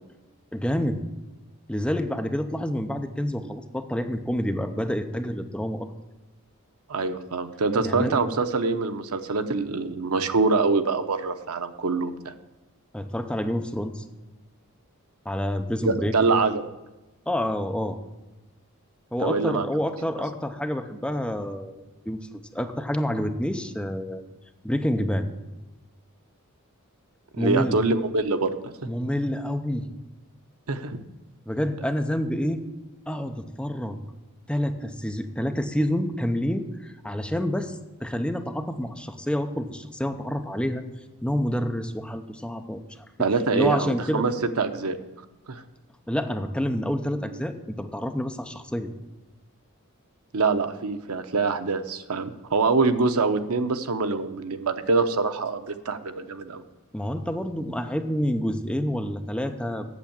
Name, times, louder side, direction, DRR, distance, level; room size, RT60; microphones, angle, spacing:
voice 1, 0.5-1.0 1.7-5.9 7.8-8.1 12.9-14.0 15.3-16.2 17.3-18.0 19.1-21.7 22.1-24.2 24.6-25.3 27.4-27.8 28.9-29.9 31.5-32.7 33.1-34.0 34.5-40.8 41.2-43.0 43.5-44.2 46.1-48.9 56.9-60.0, equal, 5° left, 6 dB, 0.6 m, -28 dB
voice 2, 6.9-12.3 15.8-16.6 19.2-19.7 27.3-28.7 30.7-31.0 43.2-45.0 45.5-45.6 50.3-56.6, right 4 dB, 85° right, 9 dB, 0.8 m, -25 dB
8.3 x 7.2 x 8.7 m, 1.1 s
head